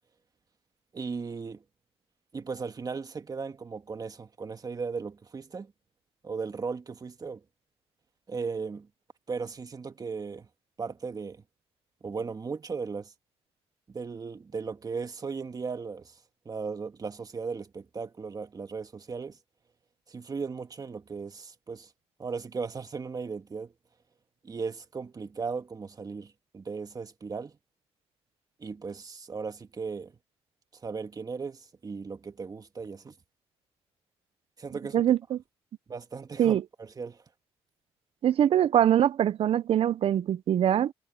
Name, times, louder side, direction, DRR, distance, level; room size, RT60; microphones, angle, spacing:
voice 1, 0.9-1.6 2.3-5.7 6.2-7.4 8.3-8.9 9.3-10.5 10.8-11.4 12.0-13.1 13.9-16.1 16.5-19.4 20.1-21.9 22.2-23.7 24.4-27.6 28.6-30.1 30.8-33.1 34.6-35.0 35.9-37.2, right 5 dB, 35° right, 2.1 m, -37 dB
voice 2, 34.9-35.4 36.4-36.6 38.2-40.9, right 10 dB, 65° right, 0.7 m, -23 dB
cardioid pair, 85°, 11 cm